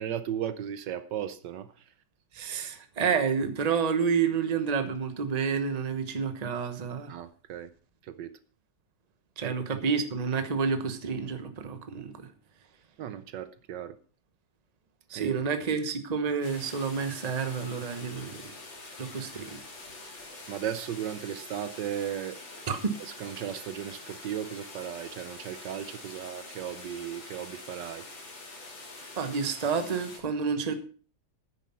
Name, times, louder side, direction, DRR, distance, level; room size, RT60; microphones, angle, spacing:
voice 1, 0.0-1.9 7.1-7.7 8.0-8.4 9.4-9.8 13.0-14.0 15.1-15.4 20.5-22.4 23.0-28.1, right 10 dB, 75° right, 13 dB, 1.3 m, -36 dB
voice 2, 2.3-7.1 9.4-12.3 15.1-18.4 19.0-19.6 22.7-22.9 29.2-30.7, right 5 dB, 25° right, 8 dB, 1.0 m, -29 dB
sound 1, 16.4-30.2, left 2 dB, 85° left, 3.7 m, -45 dB
10.0 x 9.3 x 5.6 m, 0.40 s
omnidirectional pair, 2.1 m